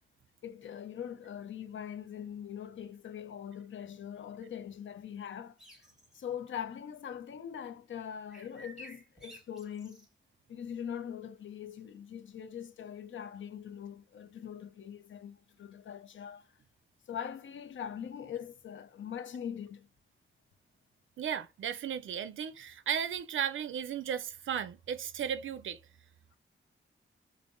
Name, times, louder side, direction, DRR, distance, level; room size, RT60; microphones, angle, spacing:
voice 1, 0.4-5.6 6.1-10.1 10.5-16.6 17.1-19.9, left 8 dB, 75° left, 0.5 m, -42 dB
sound 1, 5.6-6.2 8.3-10.1, right 1 dB, 5° right, 1.3 m, -52 dB
voice 2, 21.2-25.8, right 8 dB, 80° right, 0.4 m, -35 dB
5.3 x 2.1 x 2.5 m
wide cardioid pair, 115°, 20 cm